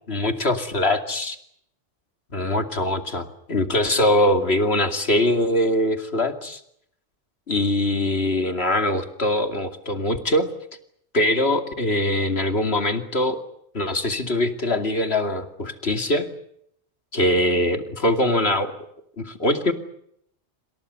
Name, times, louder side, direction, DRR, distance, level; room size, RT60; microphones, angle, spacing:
voice 1, 0.1-1.4 2.3-6.6 7.5-10.5 11.1-13.4 13.7-16.3 17.1-18.7 19.2-19.7, left 1 dB, 60° left, 7 dB, 2.9 m, -22 dB
27.5 x 26.5 x 6.9 m, 0.72 s
omnidirectional pair, 1.2 m